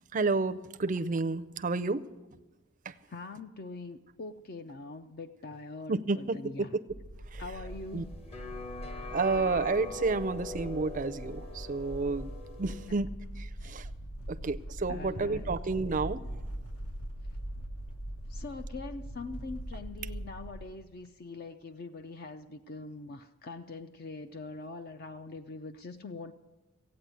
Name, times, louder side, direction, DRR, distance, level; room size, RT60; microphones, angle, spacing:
voice 1, 0.1-2.0 2.9-3.0 5.9-6.8 7.3-7.4 7.9-8.0 9.1-12.3 12.6-13.1 13.6-13.9 14.3-16.2, right 3 dB, 35° right, 10 dB, 0.5 m, -30 dB
voice 2, 3.1-6.8 7.4-8.2 12.7-12.8 13.6-13.8 14.9-15.5 18.3-26.3, left 3 dB, 45° left, 9 dB, 0.4 m, -43 dB
sound 1, 6.9-20.6, right 1 dB, 75° left, 1.4 m, -42 dB
sound 2, 7.6-12.9, left 3 dB, 25° left, 0.9 m, -43 dB
15.5 x 8.8 x 9.2 m, 1.1 s
head